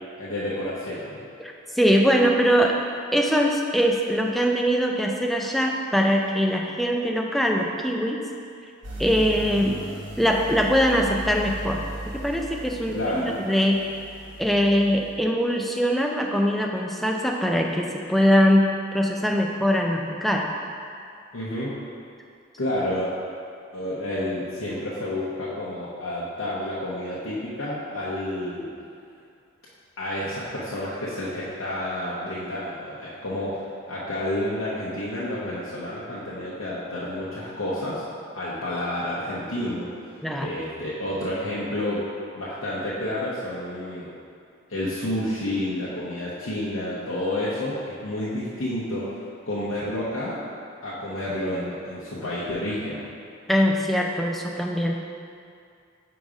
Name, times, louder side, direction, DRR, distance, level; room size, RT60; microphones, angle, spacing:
voice 1, 0.2-1.2 12.9-13.4 21.3-21.8 22.6-23.1 23.7-28.7 30.0-38.0 38.3-42.0 42.3-44.1 44.7-50.4 50.8-53.0, left 1 dB, 85° left, -8 dB, 0.8 m, -30 dB
voice 2, 1.4-2.8 3.1-8.2 9.0-9.8 10.2-11.8 12.1-13.8 14.4-20.5 40.2-40.6 53.5-55.0, equal, ahead, 0 dB, 0.3 m, -22 dB
sound 1, 8.8-15.2, right 1 dB, 65° right, 1.0 m, -37 dB
5.1 x 3.9 x 4.8 m, 2.4 s
head